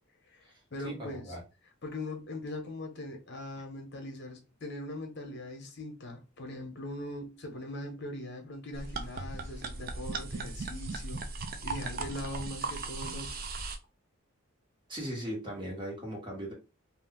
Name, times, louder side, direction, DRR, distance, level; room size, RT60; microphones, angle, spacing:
voice 1, 0.3-1.3 1.8-11.2 11.6-13.4, left 1 dB, 55° left, 0.9 m, -41 dB
voice 2, 0.8-1.4 14.9-16.5, right 1 dB, 25° right, 1.2 m, -38 dB
sound 1, 8.7-13.8, right 3 dB, 45° right, 0.4 m, -37 dB
2.5 x 2.2 x 3.6 m
head